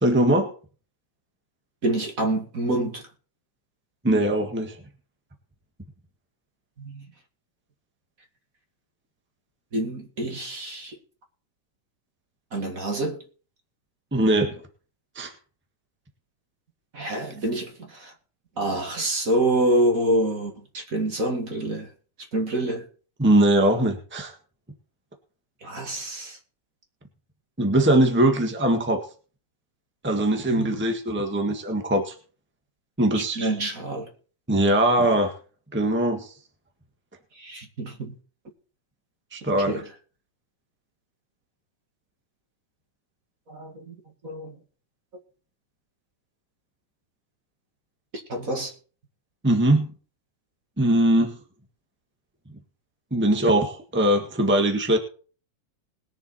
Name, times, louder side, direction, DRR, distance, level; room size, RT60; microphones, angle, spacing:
voice 1, 0.0-0.5 4.0-4.8 14.1-14.6 15.1-15.3 23.2-24.3 27.6-29.0 30.0-32.1 33.0-33.5 34.5-35.3 35.7-36.3 39.3-39.8 49.4-49.9 50.8-51.4 53.1-55.0, right 1 dB, 15° right, 0.4 m, -21 dB
voice 2, 1.8-3.0 6.8-7.1 9.7-11.0 12.5-13.2 16.9-18.1 18.6-21.9 22.3-22.9 25.6-26.4 30.5-30.8 33.1-34.1 37.4-38.1 39.7-39.9 43.5-44.0 44.2-44.6 48.3-48.7, right 1 dB, 30° right, 1.9 m, -27 dB
21.0 x 7.2 x 4.3 m
omnidirectional pair, 3.6 m